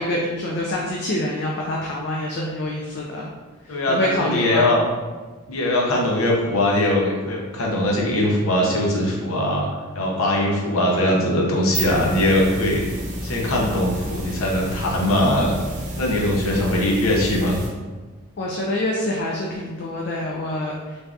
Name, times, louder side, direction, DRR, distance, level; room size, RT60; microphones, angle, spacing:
voice 1, 0.0-3.3 3.7-4.7 18.4-21.0, left 1 dB, 55° left, -2 dB, 0.3 m, -26 dB
voice 2, 3.7-4.8 5.5-9.7 9.9-12.8 13.2-15.5 16.0-17.6, left 1 dB, 80° left, -2 dB, 0.7 m, -21 dB
sound 1, 11.5-17.7, right 1 dB, 35° right, 0.5 m, -31 dB
3.4 x 2.6 x 2.4 m, 1.3 s
head